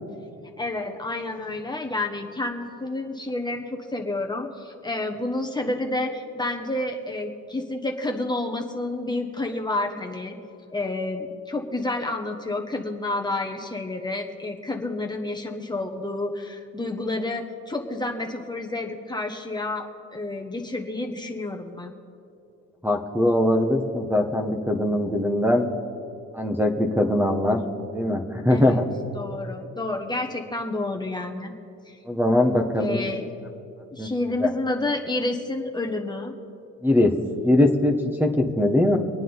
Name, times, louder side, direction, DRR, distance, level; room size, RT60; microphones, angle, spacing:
voice 1, 0.6-10.4 10.7-19.9 20.1-21.9 28.5-28.8 29.1-31.5 31.9-32.0 32.8-33.3 33.9-36.3, left 2 dB, 15° left, 1 dB, 1.3 m, -29 dB
voice 2, 22.8-25.6 26.3-27.6 27.9-28.9 32.0-33.0 34.0-34.1 34.4-34.5 36.8-37.1 37.4-39.0, left 1 dB, 5° right, 3 dB, 1.3 m, -21 dB
25.5 x 9.1 x 4.0 m, 2.6 s
cardioid pair, 90°, 30 cm